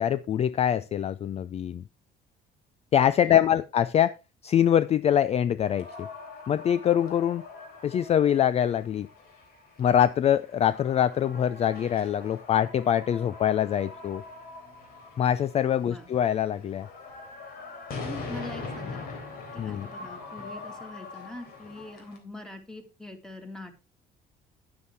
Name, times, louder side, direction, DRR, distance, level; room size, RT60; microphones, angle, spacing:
voice 1, 0.0-1.8 2.9-4.1 4.4-6.1 6.5-7.4 7.8-9.1 9.8-14.2 15.2-16.9 19.6-19.9, left 10 dB, 40° left, 16 dB, 0.4 m, -24 dB
voice 2, 3.2-3.6 15.8-16.1 18.0-19.1 19.5-23.7, left 2 dB, 5° left, 5 dB, 2.3 m, -43 dB
sound 1, 5.6-22.2, left 3 dB, 65° left, 3.6 m, -42 dB
9.7 x 9.6 x 3.4 m, 0.29 s
cardioid pair, 110°, 17 cm